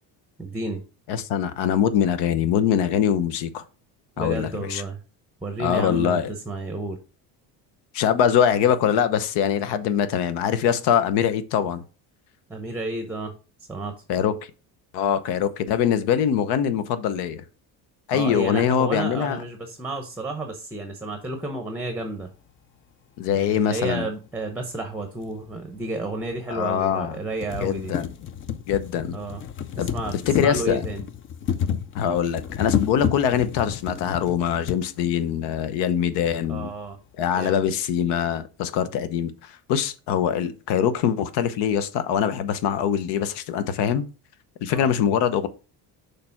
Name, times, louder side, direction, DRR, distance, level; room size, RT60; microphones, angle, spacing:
voice 1, 0.4-0.8 4.2-5.0 5.4-7.0 12.5-13.3 13.7-13.9 18.1-22.3 23.3-27.9 29.1-29.4 29.7-31.0 36.5-37.0 37.3-37.6 44.7-44.9, right 2 dB, 5° right, 0.7 m, -31 dB
voice 2, 1.1-3.6 4.2-4.8 5.6-6.3 7.9-11.8 14.1-14.3 14.9-17.4 18.1-19.4 23.2-24.0 26.5-27.2 27.6-28.1 28.7-29.2 29.8-29.9 30.3-30.8 31.9-36.7 37.2-44.1 44.6-45.5, left 8 dB, 80° left, 0.9 m, -23 dB
sound 1, 25.2-25.3 26.3-26.4 26.8-26.9 27.2-34.8 35.7-35.8 36.1-36.2, left 9 dB, 30° left, 0.4 m, -30 dB
6.6 x 3.4 x 5.8 m
cardioid pair, 150°, 40 cm